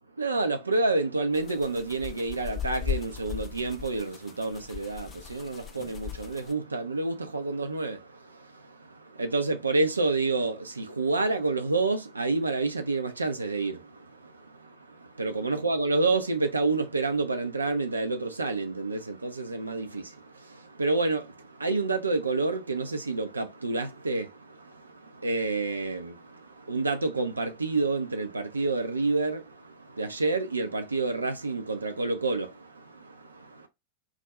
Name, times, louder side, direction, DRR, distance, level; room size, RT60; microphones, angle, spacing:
voice 1, 0.2-33.7, right 3 dB, 80° right, 0.4 m, -29 dB
sound 1, 1.3-6.5, left 9 dB, 25° left, 0.3 m, -38 dB
2.4 x 2.0 x 2.9 m
figure-of-eight pair, 90°, 0 cm